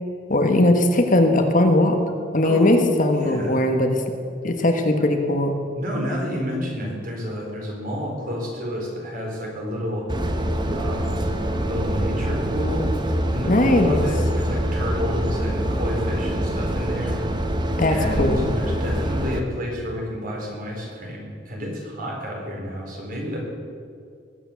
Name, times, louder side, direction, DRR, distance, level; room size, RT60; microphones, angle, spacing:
voice 1, 0.3-2.0 2.3-4.0 4.4-5.6 13.5-14.1 17.8-18.5, left 1 dB, 45° left, 5 dB, 1.4 m, -19 dB
voice 2, 3.1-3.6 5.7-10.1 10.7-11.3 11.6-12.9 13.3-17.1 17.9-23.4, equal, 50° right, -1 dB, 4.1 m, -30 dB
sound 1, 10.1-19.4, equal, 25° right, 1.0 m, -25 dB
20.0 x 9.0 x 6.9 m, 2.3 s
head